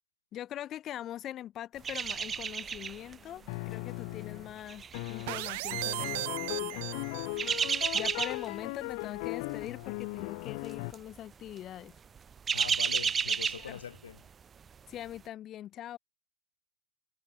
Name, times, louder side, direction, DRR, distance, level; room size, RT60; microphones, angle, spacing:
voice 1, 0.3-6.9 7.9-12.0 13.7-13.8 14.9-16.0, left 12 dB, 30° left, 2.0 m, -42 dB
sound 1, 1.8-3.1 3.5-3.7 4.4-6.1 7.1-8.6 8.9-9.2 9.5-9.7 10.6-11.0 11.3-11.5 12.0-14.3 14.6-14.7, right 7 dB, 20° right, 0.8 m, -32 dB
sound 2, 3.5-4.6 4.9-10.9, left 33 dB, 50° left, 0.6 m, -38 dB
sound 3, 5.3-7.7, right 23 dB, 55° right, 0.7 m, -37 dB
voice 2, 12.5-14.3, left 8 dB, 90° left, 2.7 m, -43 dB
hypercardioid pair, 130°, 0 cm